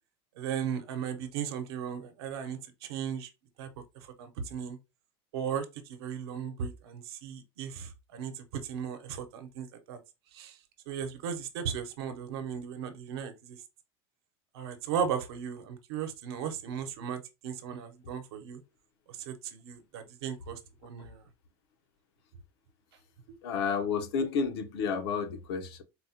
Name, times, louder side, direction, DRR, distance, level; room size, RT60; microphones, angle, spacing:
voice 1, 0.4-3.3 3.6-3.7 4.2-4.8 5.3-10.0 10.3-10.5 10.9-13.6 14.5-18.6 19.3-21.2, right 7 dB, 80° right, 0.8 m, -36 dB
voice 2, 23.4-25.8, left 5 dB, 80° left, 0.7 m, -31 dB
4.2 x 2.1 x 2.8 m
supercardioid pair, 140°, 13 cm